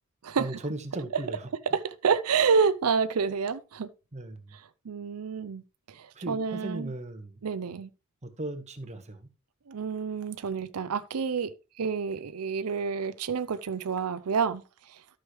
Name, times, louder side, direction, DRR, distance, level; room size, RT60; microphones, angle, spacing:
voice 1, 0.4-1.5 4.1-4.5 6.1-7.4 8.2-9.3, right 1 dB, 30° right, 1.3 m, -37 dB
voice 2, 1.7-3.9 4.5-6.9 7.4-7.9 9.7-14.6 14.9-15.0, right 5 dB, 85° right, 0.5 m, -29 dB
12.5 x 6.4 x 3.2 m
head